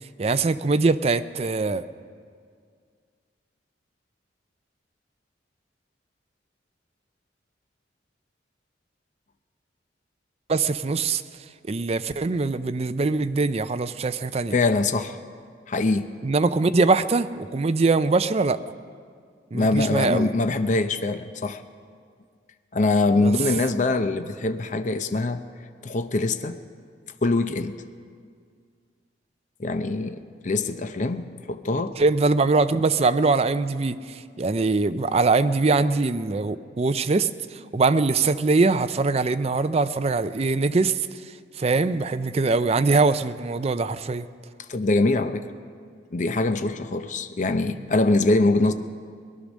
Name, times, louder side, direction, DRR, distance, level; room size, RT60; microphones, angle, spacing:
voice 1, 0.2-1.9 10.5-11.2 11.7-14.5 16.2-18.6 19.5-20.3 23.2-23.3 32.0-41.0 41.6-44.3, right 3 dB, 35° right, 12 dB, 0.4 m, -22 dB
voice 2, 14.5-15.2 15.7-16.1 19.5-21.6 22.7-25.4 25.8-26.6 27.2-27.8 29.6-31.9 44.6-45.4 46.1-48.7, left 2 dB, 40° left, 9 dB, 0.6 m, -23 dB
18.5 x 11.5 x 6.3 m, 2.1 s
head